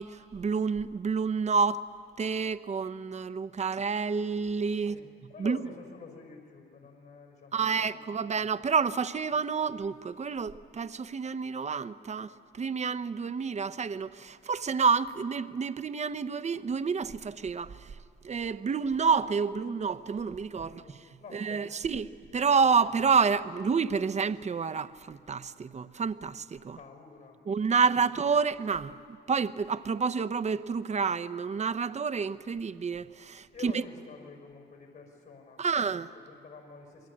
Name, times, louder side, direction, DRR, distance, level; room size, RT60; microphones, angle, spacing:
voice 1, 0.0-1.8 2.2-5.0 5.4-5.6 7.5-12.3 12.6-17.8 18.2-20.8 21.3-26.8 27.5-29.0 29.3-33.8 35.6-36.1, right 5 dB, 35° right, 0.8 m, -29 dB
voice 2, 4.8-8.2 20.6-21.7 26.8-27.4 33.5-37.1, left 5 dB, 55° left, 5.8 m, -48 dB
27.5 x 21.5 x 8.7 m
cardioid pair, 90°, 20 cm